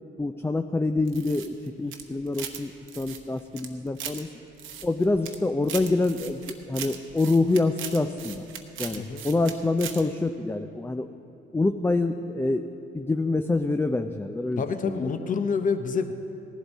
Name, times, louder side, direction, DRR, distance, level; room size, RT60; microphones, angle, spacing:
voice 1, 0.2-4.3 4.8-8.4 8.8-11.1 11.5-12.6 12.9-15.1, left 2 dB, 10° left, 7 dB, 0.4 m, -26 dB
sound 1, 1.1-2.6 2.9-4.2 4.6-5.4 5.6-9.5 9.8-10.0, right 8 dB, 85° right, 1.0 m, -38 dB
voice 2, 14.6-16.1, left 5 dB, 40° left, 9 dB, 0.7 m, -27 dB
18.0 x 11.5 x 4.1 m, 2.9 s
cardioid pair, 90°, 20 cm